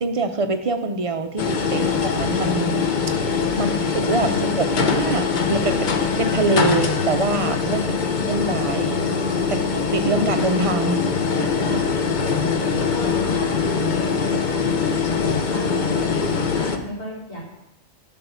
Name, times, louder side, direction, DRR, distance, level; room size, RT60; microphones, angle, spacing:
voice 1, 0.0-1.9 2.1-3.8 4.1-7.8 8.3-9.0 9.5-11.0, right 2 dB, 65° right, 7 dB, 0.3 m, -24 dB
sound 1, 1.4-16.8, left 5 dB, 45° left, 0.8 m, -22 dB
voice 2, 3.5-3.9 4.3-4.4 7.6-8.1 11.3-12.0 12.3-12.5 13.3-15.1 15.4-16.1 16.5-17.4, equal, 85° left, -5 dB, 3.9 m, -35 dB
12.0 x 5.4 x 5.5 m, 0.89 s
omnidirectional pair, 1.3 m